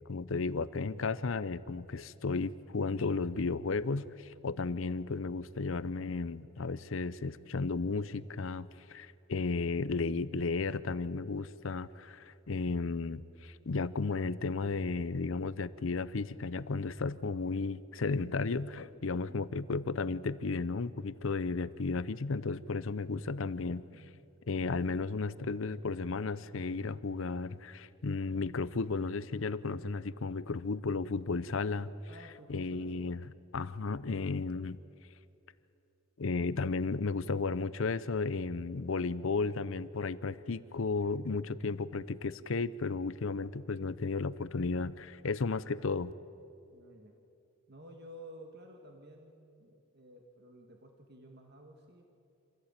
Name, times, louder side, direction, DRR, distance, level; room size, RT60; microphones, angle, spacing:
voice 1, 0.1-23.8 24.5-31.9 32.5-33.2 33.5-34.8 36.2-46.1, left 4 dB, 65° left, 16 dB, 0.6 m, -34 dB
voice 2, 19.1-19.4 23.9-24.1 32.1-33.1 33.6-33.8 46.7-47.2 47.7-52.1, right 1 dB, 50° right, 3 dB, 1.8 m, -53 dB
26.0 x 15.5 x 8.9 m, 2.7 s
head